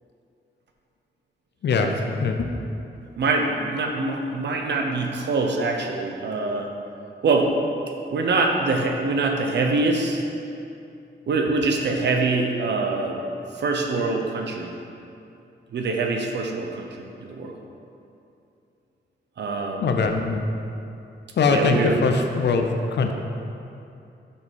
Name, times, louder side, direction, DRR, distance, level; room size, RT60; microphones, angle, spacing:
voice 1, 2.2-2.5 19.8-20.4 21.4-23.1, left 4 dB, 70° left, 4 dB, 0.7 m, -22 dB
voice 2, 3.2-6.7 7.2-7.5 8.1-10.2 11.3-13.2 13.6-14.7 15.7-16.9 17.2-17.6 19.4-20.0 21.5-21.9, right 3 dB, 70° right, 2 dB, 0.9 m, -24 dB
6.7 x 5.4 x 5.3 m, 2.7 s
wide cardioid pair, 160°, 19 cm